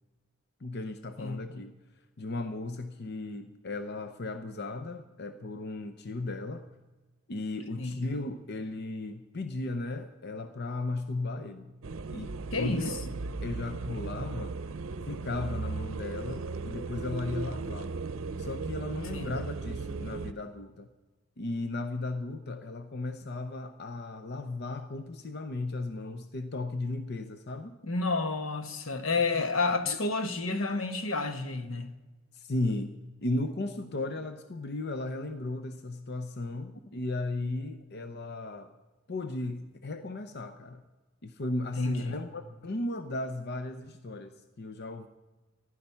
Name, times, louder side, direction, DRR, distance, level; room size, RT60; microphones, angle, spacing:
voice 1, 0.6-1.7 2.2-6.7 7.3-11.7 12.1-12.9 13.4-14.6 15.1-17.9 18.4-20.9 21.4-27.8 29.3-29.5 29.8-30.0 32.3-32.9 33.2-38.7 39.1-40.8 41.2-45.1, left 2 dB, 55° left, 0.7 m, -35 dB
sound 1, 11.8-20.3, right 4 dB, 85° right, 0.6 m, -36 dB
voice 2, 12.5-13.0 19.1-19.3 27.8-31.9 41.8-42.2, left 3 dB, 80° left, 1.2 m, -30 dB
15.0 x 11.5 x 5.6 m
head